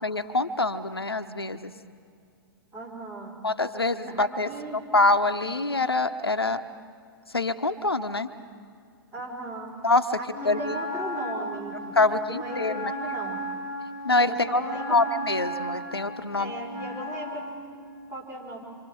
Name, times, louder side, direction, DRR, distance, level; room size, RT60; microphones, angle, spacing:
voice 1, 0.0-1.7 3.4-4.5 4.9-6.6 7.3-8.3 9.8-10.2 10.4-10.8 12.0-12.9 14.0-14.6 14.9-16.5, left 2 dB, 85° left, 8 dB, 0.9 m, -25 dB
voice 2, 2.7-3.4 4.0-4.8 9.1-9.7 10.1-13.4 14.3-15.0 16.3-17.4 18.1-18.7, right 2 dB, 20° right, -1 dB, 4.9 m, -37 dB
Wind instrument woodwind instrument, 10.3-17.6, equal, 55° right, 7.1 m, -35 dB
27.0 x 26.0 x 4.8 m, 2.3 s
figure-of-eight pair, 105°, 12 cm